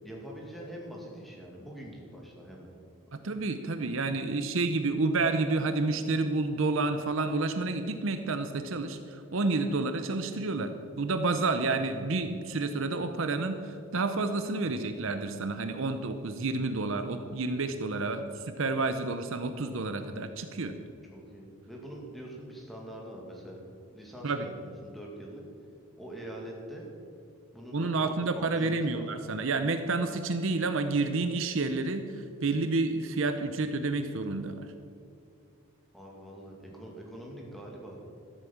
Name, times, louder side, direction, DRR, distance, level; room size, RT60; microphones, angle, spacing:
voice 1, 0.0-2.7 3.1-3.3 21.1-23.6 23.9-25.4 26.0-26.9 27.5-29.1 35.9-38.0, right 1 dB, ahead, -2 dB, 2.3 m, -44 dB
voice 2, 3.1-20.7 24.2-24.5 27.7-34.7, right 3 dB, 60° right, 8 dB, 0.7 m, -30 dB
13.5 x 8.2 x 7.2 m, 2.4 s
head